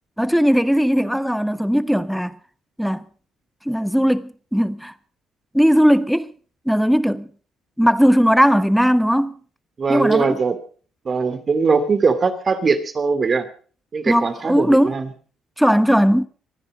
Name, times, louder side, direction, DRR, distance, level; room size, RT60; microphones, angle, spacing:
voice 1, 0.2-2.3 2.8-3.0 3.7-4.9 5.5-6.3 6.7-7.3 7.8-9.4 9.9-10.4 14.1-15.0 15.6-16.3, equal, ahead, 1.1 m, -18 dB
voice 2, 9.8-10.6 11.0-13.5 13.9-15.1, right 4 dB, 40° right, 2.7 m, -20 dB
24.5 x 10.0 x 5.2 m
hypercardioid pair, 55°, 0 cm